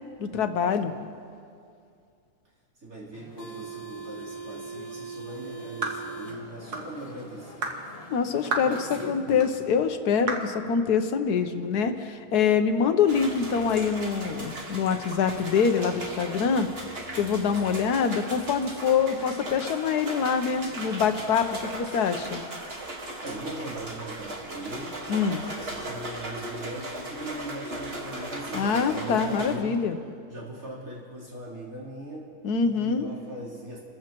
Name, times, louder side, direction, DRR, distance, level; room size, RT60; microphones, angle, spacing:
voice 1, 0.2-0.9 8.1-16.7 17.1-22.4 25.1-25.4 28.5-30.0 32.4-33.1, left 6 dB, 80° left, 8 dB, 1.4 m, -25 dB
voice 2, 2.8-7.7 8.6-9.7 23.2-25.0 25.4-29.8 30.3-32.3 32.6-33.8, right 1 dB, 60° right, -7 dB, 4.1 m, -40 dB
sound 1, 3.1-9.6, right 3 dB, 25° left, 1.3 m, -42 dB
sound 2, 5.8-6.0 6.7-6.9 7.6-7.8 8.5-8.7 9.4-9.5 10.3-10.5, right 3 dB, 80° right, 2.0 m, -30 dB
sound 3, 13.1-29.5, right 1 dB, 40° right, 1.8 m, -37 dB
29.0 x 14.5 x 3.0 m, 2.4 s
omnidirectional pair, 1.6 m